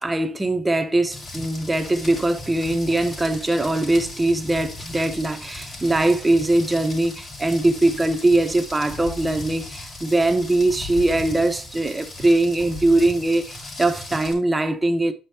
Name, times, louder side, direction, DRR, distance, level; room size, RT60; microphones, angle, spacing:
voice 1, 0.0-15.1, right 2 dB, 15° right, 1.1 m, -21 dB
Rain, 1.1-14.3, left 2 dB, 40° left, 3.5 m, -37 dB
9.4 x 5.3 x 2.8 m
cardioid pair, 115°, 0 cm